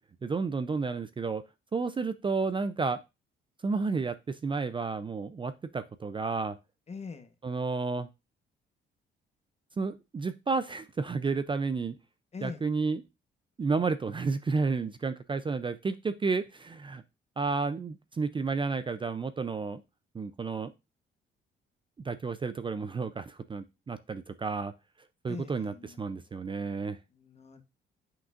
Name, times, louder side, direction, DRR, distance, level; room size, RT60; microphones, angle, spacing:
voice 1, 0.2-1.4 1.7-3.0 3.6-6.6 7.4-8.1 9.8-11.9 12.4-13.0 13.6-17.0 17.4-19.8 20.1-20.7 22.0-24.7 25.2-27.0, right 4 dB, 25° right, 12 dB, 0.5 m, -31 dB
voice 2, 6.9-7.3 12.3-12.6 25.3-26.0 27.1-27.6, left 5 dB, 35° left, 9 dB, 1.1 m, -42 dB
7.8 x 5.9 x 2.5 m, 0.25 s
cardioid pair, 90°, 20 cm